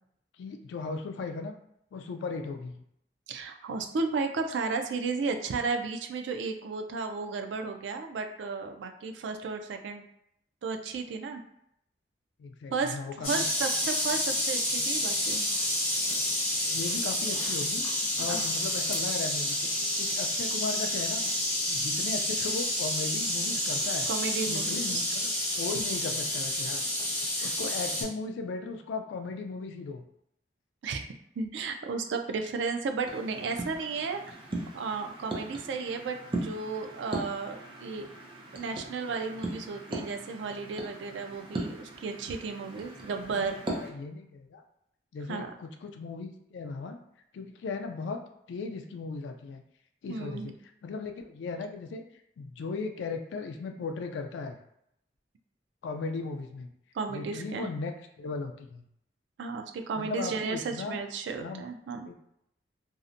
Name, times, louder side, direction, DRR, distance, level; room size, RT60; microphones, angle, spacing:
voice 1, 0.4-1.5 1.9-2.8 12.4-13.4 16.7-17.8 18.2-19.6 20.0-21.2 21.7-24.1 24.4-26.8 27.4-30.0 43.3-43.5 43.8-44.6 45.1-47.0 47.3-48.2 48.5-49.6 50.0-50.5 50.8-52.0 52.4-54.6 55.8-56.7 57.1-57.9 58.2-58.8 59.9-61.0 61.4-61.7 62.1-62.2, left 4 dB, 90° left, 5 dB, 0.3 m, -37 dB
voice 2, 3.3-10.0 10.6-11.4 12.7-13.0 13.2-15.5 18.3-18.4 24.1-25.0 27.4-27.5 30.8-31.0 31.4-34.4 34.7-38.1 38.5-43.6 45.3-45.5 50.1-50.5 56.9-57.7 59.4-62.1, right 4 dB, 90° right, 5 dB, 0.3 m, -34 dB
sound 1, 13.2-28.0, left 1 dB, 35° left, 1.1 m, -29 dB
sound 2, 33.0-43.9, right 2 dB, 30° right, 0.5 m, -39 dB
2.6 x 2.1 x 2.5 m, 0.75 s
head